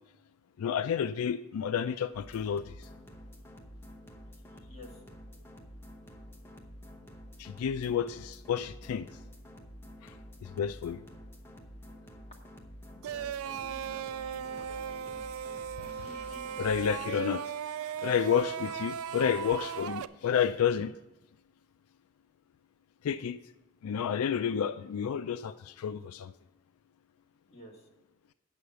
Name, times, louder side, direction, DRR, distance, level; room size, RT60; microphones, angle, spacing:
voice 1, 0.6-2.9 7.4-9.1 10.0-10.1 10.4-11.0 16.0-16.3 16.6-17.4 18.0-20.9 23.0-23.4 23.8-26.3, left 8 dB, 80° left, 13 dB, 0.3 m, -30 dB
sound 1, 2.1-17.1, equal, 10° left, 0.8 m, -50 dB
voice 2, 4.7-5.0 12.9-15.2 15.8-16.7 27.5-27.9, left 1 dB, 30° left, -2 dB, 1.7 m, -52 dB
sound 2, 13.0-20.1, right 8 dB, 75° right, 0.3 m, -37 dB
8.6 x 6.4 x 6.7 m, 1.0 s
head